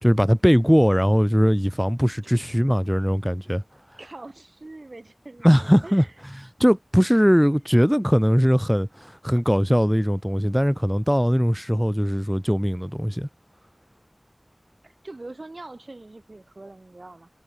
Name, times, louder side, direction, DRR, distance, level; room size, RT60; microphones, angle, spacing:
voice 1, 0.0-3.6 5.4-6.0 6.4-13.3, equal, ahead, 0.8 m, -20 dB
voice 2, 4.0-6.1 14.8-17.3, right 2 dB, 75° right, 6.2 m, -43 dB
wide cardioid pair, 45°, 0 cm